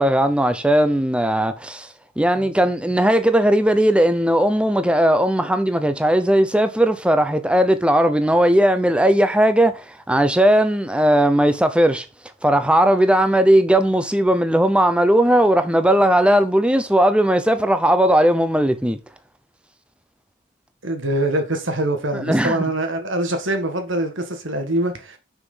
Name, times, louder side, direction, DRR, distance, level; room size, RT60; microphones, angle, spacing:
voice 1, 0.0-1.9 2.2-12.0 12.4-19.0 22.1-22.7, right 1 dB, 5° right, 0.7 m, -17 dB
voice 2, 20.8-25.2, right 1 dB, 60° right, 1.8 m, -24 dB
6.4 x 6.1 x 5.5 m
head